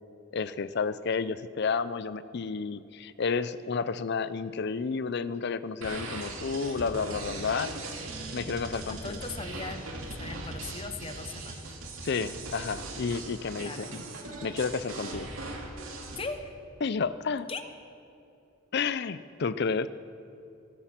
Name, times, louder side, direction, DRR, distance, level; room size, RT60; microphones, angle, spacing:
voice 1, 0.3-7.8 8.3-9.2 12.0-14.0 14.4-15.3 16.8-17.5 18.7-19.9, left 5 dB, 55° left, 15 dB, 0.5 m, -31 dB
sound 1, 5.8-16.2, right 2 dB, 90° right, 2.4 m, -39 dB
voice 2, 8.8-9.9 10.1-11.7 13.6-13.9 16.1-16.6 17.5-17.7, left 3 dB, 25° left, 7 dB, 0.9 m, -39 dB
23.0 x 8.5 x 5.9 m, 2.7 s
head